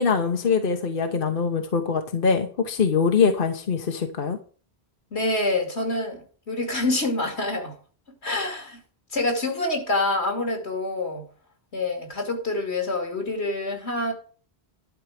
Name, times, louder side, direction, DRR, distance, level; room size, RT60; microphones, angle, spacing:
voice 1, 0.0-4.4, left 5 dB, 55° left, 1.2 m, -23 dB
voice 2, 5.1-7.7 8.2-8.8 9.1-11.2 11.7-14.1, left 2 dB, 85° left, 2.9 m, -26 dB
11.5 x 4.7 x 7.5 m
omnidirectional pair, 1.1 m